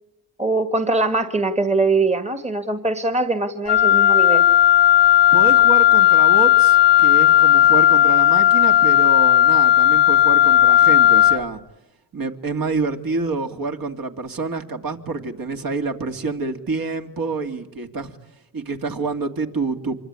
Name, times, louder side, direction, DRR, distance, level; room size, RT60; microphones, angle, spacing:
voice 1, 0.4-4.4, right 3 dB, 15° right, 9 dB, 1.8 m, -22 dB
Wind instrument woodwind instrument, 3.7-11.4, left 12 dB, 90° left, 0.9 m, -14 dB
voice 2, 5.3-11.6 12.1-18.2 18.5-20.0, right 4 dB, 50° right, 5 dB, 2.6 m, -27 dB
26.0 x 23.5 x 9.7 m, 0.89 s
cardioid pair, 95°, 43 cm